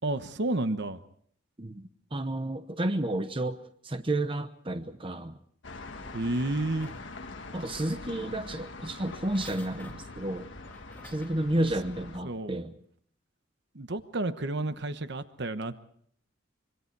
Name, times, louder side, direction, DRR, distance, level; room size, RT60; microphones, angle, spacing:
voice 1, 0.0-1.0 6.1-7.0 12.2-12.5 13.7-15.8, right 2 dB, 60° right, 1.1 m, -31 dB
voice 2, 1.6-5.3 7.5-10.5 11.0-12.7, right 1 dB, 25° right, 1.0 m, -31 dB
sound 1, 5.6-12.2, left 3 dB, 70° left, 1.6 m, -43 dB
sound 2, 6.0-7.5 9.1-11.5 12.0-12.1, left 2 dB, 10° left, 1.9 m, -53 dB
25.5 x 24.0 x 4.7 m
head